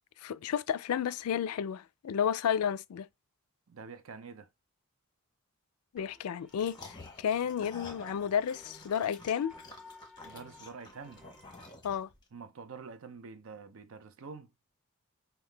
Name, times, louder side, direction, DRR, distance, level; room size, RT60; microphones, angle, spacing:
voice 1, 0.2-3.1 5.9-9.5 11.8-12.1, left 8 dB, 85° left, 0.4 m, -32 dB
voice 2, 3.7-4.5 10.2-11.2 12.3-14.5, right 5 dB, 70° right, 0.6 m, -47 dB
sound 1, 6.0-11.7, left 3 dB, 5° right, 1.0 m, -56 dB
sound 2, 6.5-12.2, left 3 dB, 20° left, 1.0 m, -50 dB
5.6 x 2.2 x 3.3 m
head